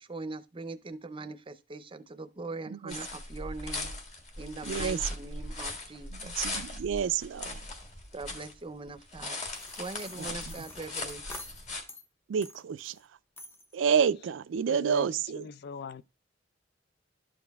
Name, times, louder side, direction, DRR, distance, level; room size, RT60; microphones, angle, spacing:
voice 1, 0.0-3.9 4.4-6.3 8.1-9.4 9.8-11.2, right 3 dB, 30° right, 0.6 m, -41 dB
sound 1, 2.9-8.5 8.9-11.8, left 2 dB, 40° left, 1.7 m, -39 dB
voice 2, 4.7-5.0 6.4-7.6 10.2-10.3 12.3-12.9 13.7-15.4, right 7 dB, 80° right, 0.4 m, -29 dB
sound 2, 9.5-12.1 12.4-13.0 13.4-13.7, left 2 dB, 15° left, 0.7 m, -47 dB
voice 3, 14.7-16.0, left 4 dB, 60° left, 0.4 m, -41 dB
12.0 x 5.1 x 2.3 m
head